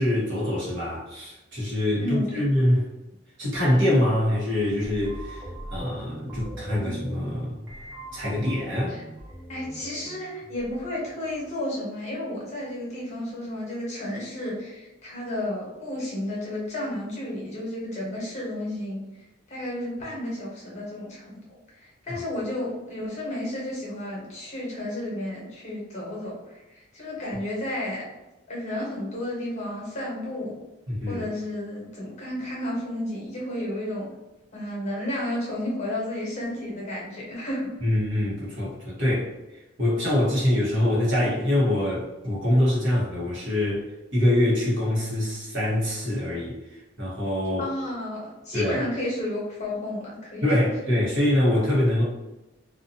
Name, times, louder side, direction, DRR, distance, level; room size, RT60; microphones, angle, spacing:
voice 1, 0.0-2.9 3.4-5.4 5.7-7.5 8.1-9.0 22.1-22.2 30.9-31.2 37.8-43.8 44.1-47.7 48.5-48.8 50.4-52.0, left 1 dB, 65° right, -6 dB, 1.1 m, -24 dB
voice 2, 2.0-2.4 8.9-9.0 9.5-19.0 19.5-28.0 28.5-30.5 31.0-34.1 34.5-37.7 47.6-50.5, left 1 dB, 35° left, -4 dB, 0.9 m, -32 dB
sound 1, 4.7-11.6, right 1 dB, 15° right, 0.6 m, -40 dB
2.5 x 2.4 x 2.6 m, 0.99 s
head